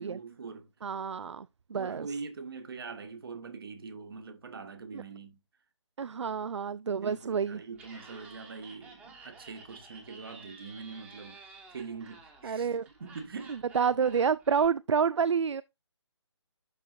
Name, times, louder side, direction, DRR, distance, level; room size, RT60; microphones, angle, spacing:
voice 1, 0.0-0.7 1.7-5.4 7.0-13.6, right 5 dB, 50° right, 1.7 m, -43 dB
voice 2, 0.8-2.1 4.9-5.0 6.0-7.6 12.4-12.9 13.5-15.6, right 6 dB, 70° right, 0.4 m, -29 dB
Laughter, 7.7-14.7, right 3 dB, 10° right, 1.3 m, -52 dB
11.5 x 4.1 x 2.5 m
figure-of-eight pair, 145°, 15 cm